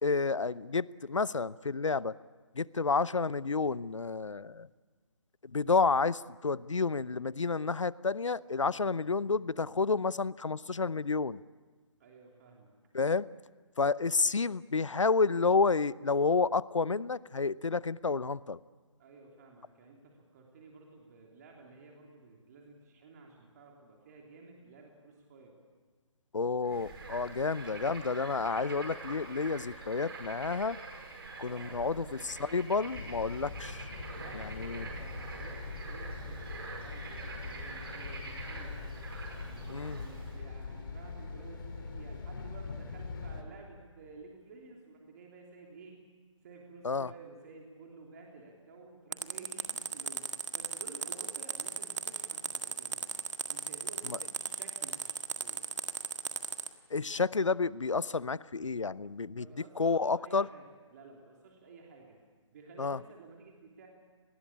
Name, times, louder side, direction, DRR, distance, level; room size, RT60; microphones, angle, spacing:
voice 1, 0.0-2.1 2.6-4.7 5.4-11.4 12.9-13.3 13.8-18.6 26.3-30.8 31.4-33.9 34.6-34.8 39.7-40.0 46.8-47.1 54.1-54.2 56.9-59.4 59.8-60.5 62.8-63.0, left 4 dB, 80° left, 20 dB, 0.7 m, -30 dB
voice 2, 12.0-12.7 19.0-25.5 27.2-27.4 31.4-32.7 34.1-38.9 39.4-45.9 46.4-53.1 53.5-55.7 59.3-62.2 62.5-63.9, right 3 dB, 35° right, 0 dB, 3.3 m, -53 dB
Bird / Frog, 26.6-40.4, right 3 dB, 50° right, 5.1 m, -45 dB
sound 1, 32.9-43.4, left 4 dB, 45° left, 2.9 m, -42 dB
sound 2, 49.1-56.7, right 5 dB, 70° right, 1.8 m, -36 dB
26.0 x 20.0 x 8.6 m, 1.4 s
figure-of-eight pair, 145°, 16 cm